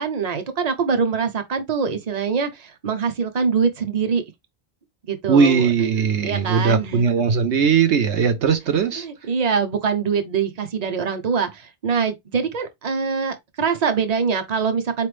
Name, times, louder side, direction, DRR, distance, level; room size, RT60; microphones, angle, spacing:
voice 1, 0.0-4.2 5.1-5.7 6.0-7.1 9.0-15.1, right 6 dB, 40° right, 0.8 m, -24 dB
voice 2, 5.3-9.1, right 6 dB, 85° right, 1.1 m, -19 dB
4.2 x 3.3 x 3.3 m
omnidirectional pair, 1.1 m